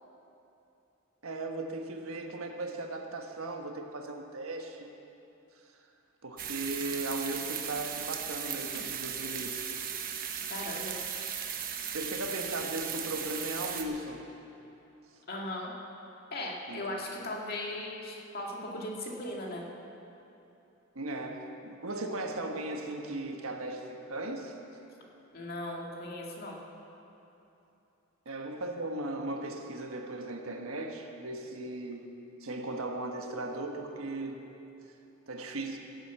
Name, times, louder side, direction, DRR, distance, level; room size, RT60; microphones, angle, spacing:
voice 1, 1.2-5.0 5.6-5.7 6.2-9.7 11.9-14.3 16.7-17.0 20.9-24.6 28.2-32.1 32.4-34.5 35.3-35.8, right 2 dB, 85° right, 3 dB, 1.4 m, -37 dB
sound 1, 6.4-13.8, right 8 dB, 45° right, 1.0 m, -37 dB
voice 2, 10.5-11.0 15.3-15.7 16.3-19.6 25.3-26.6, left 1 dB, 50° left, -1 dB, 2.0 m, -38 dB
16.0 x 8.0 x 8.0 m, 2.9 s
head